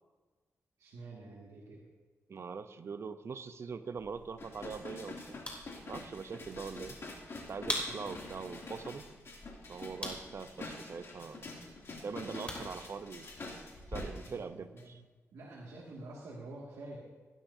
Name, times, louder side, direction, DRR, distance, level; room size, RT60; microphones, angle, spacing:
voice 1, 0.8-1.8 7.9-8.0 14.2-15.0 15.3-17.0, right 2 dB, 85° right, -5 dB, 2.1 m, -48 dB
voice 2, 2.3-5.4 5.9-7.0 7.5-9.1 9.7-11.5 12.0-13.3 13.9-15.0, right 5 dB, 55° right, 11 dB, 0.7 m, -42 dB
sound 1, 4.0-14.0, left 1 dB, 20° left, 3.3 m, -45 dB
sound 2, 4.4-14.3 14.8-14.9, left 3 dB, 55° left, 2.6 m, -46 dB
16.5 x 12.0 x 2.7 m, 1.3 s
cardioid pair, 80°, 5 cm